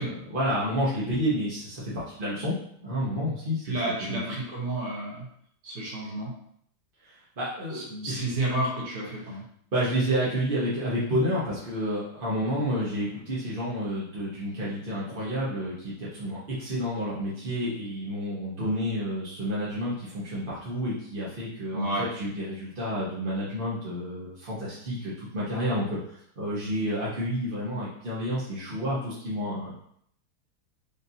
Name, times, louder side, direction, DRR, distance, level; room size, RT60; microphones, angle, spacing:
voice 1, 0.0-2.5 2.8-3.8 4.1-4.2 7.0-8.2 9.7-29.7, equal, 45° right, -8 dB, 0.6 m, -30 dB
voice 2, 3.7-5.3 5.6-6.3 7.7-9.4 21.7-22.1, right 1 dB, 85° right, -3 dB, 2.1 m, -31 dB
5.1 x 2.7 x 2.7 m, 0.67 s
omnidirectional pair, 2.4 m